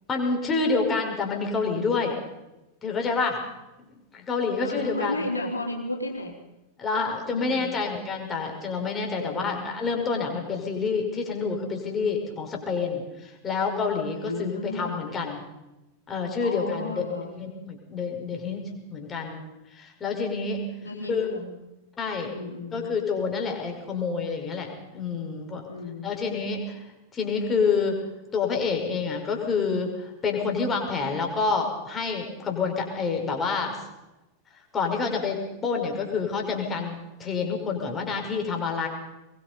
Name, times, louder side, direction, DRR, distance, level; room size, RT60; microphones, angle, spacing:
voice 1, 0.1-2.2 2.8-3.4 3.9-5.3 6.8-15.4 16.1-17.1 17.4-18.6 18.9-19.4 19.7-20.6 21.1-21.3 22.0-22.3 22.7-25.7 26.0-26.8 27.1-28.0 28.3-33.8 34.7-38.9, left 4 dB, 20° left, 1 dB, 5.6 m, -28 dB
voice 2, 4.6-6.4 7.3-7.8 9.1-9.6 14.2-15.1 16.4-17.4 20.8-21.5 22.3-22.9 25.7-26.1, left 2 dB, 80° left, 1 dB, 3.8 m, -34 dB
23.0 x 22.5 x 5.4 m, 1.0 s
figure-of-eight pair, 90°, 0 cm